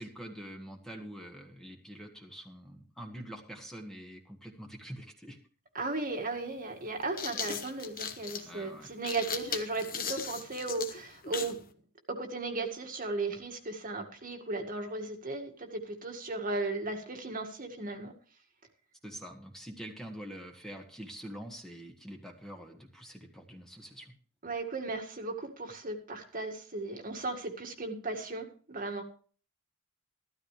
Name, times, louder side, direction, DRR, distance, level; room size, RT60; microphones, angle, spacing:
voice 1, 0.0-5.4 8.4-8.9 19.0-24.1, right 1 dB, ahead, 2 dB, 1.7 m, -45 dB
voice 2, 5.7-11.6 12.1-18.1 24.4-29.0, right 3 dB, 40° right, 4 dB, 1.9 m, -36 dB
sound 1, 5.8-5.9 6.9-11.6, left 7 dB, 40° left, 1.3 m, -38 dB
14.0 x 13.5 x 3.3 m, 0.41 s
head